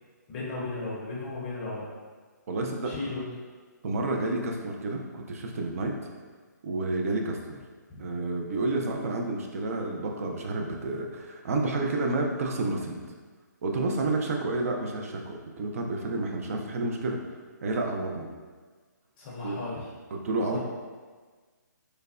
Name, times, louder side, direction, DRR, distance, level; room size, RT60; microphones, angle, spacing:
voice 1, 0.3-1.9 2.8-3.2 7.9-8.0 19.2-19.9 20.5-20.6, left 3 dB, 30° left, -6 dB, 0.5 m, -35 dB
voice 2, 2.5-2.9 3.8-5.9 6.6-7.6 8.0-13.0 13.6-17.2 17.6-18.3 19.4-19.6 20.1-20.6, right 2 dB, 50° right, 2 dB, 0.4 m, -30 dB
3.2 x 2.1 x 2.4 m, 1.5 s
hypercardioid pair, 150°, 10 cm